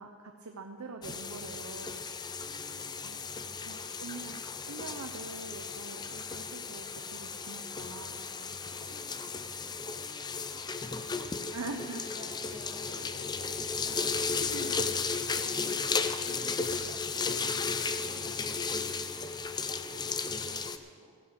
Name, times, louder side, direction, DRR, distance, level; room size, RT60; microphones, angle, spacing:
voice 1, 0.0-2.0 3.0-3.2 3.6-8.5 11.5-12.0 14.4-14.8, right 3 dB, 85° right, 4 dB, 0.8 m, -44 dB
sound 1, 1.0-20.8, left 5 dB, 20° left, 0.5 m, -35 dB
voice 2, 2.4-4.5 8.8-21.2, equal, 20° right, -4 dB, 2.8 m, -54 dB
15.0 x 9.6 x 6.0 m, 2.1 s
head